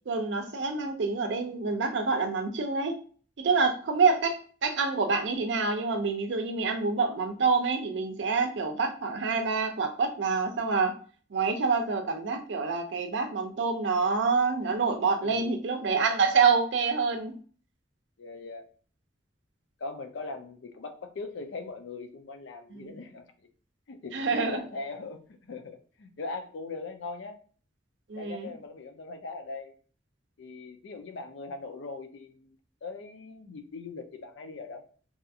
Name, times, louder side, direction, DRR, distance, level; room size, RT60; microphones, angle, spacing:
voice 1, 0.1-3.0 3.4-10.9 11.3-17.3 22.7-22.9 24.1-24.6 28.1-28.5, right 4 dB, 70° right, 5 dB, 0.5 m, -27 dB
voice 2, 15.2-15.6 18.2-18.6 19.8-23.3 23.9-27.4 28.2-29.7 30.4-32.6 32.8-34.8, left 3 dB, 85° left, 6 dB, 0.5 m, -40 dB
2.7 x 2.4 x 2.6 m, 0.42 s
head